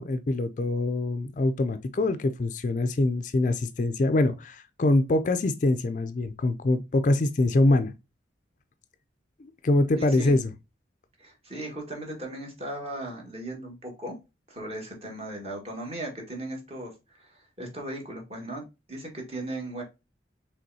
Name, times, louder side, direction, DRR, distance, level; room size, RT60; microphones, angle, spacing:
voice 1, 0.0-7.9 9.4-10.5, left 2 dB, 40° left, 0.4 m, -24 dB
voice 2, 10.0-10.4 11.2-14.1 14.5-18.6 18.9-19.8, right 1 dB, 35° right, 1.6 m, -37 dB
5.3 x 3.4 x 2.7 m
head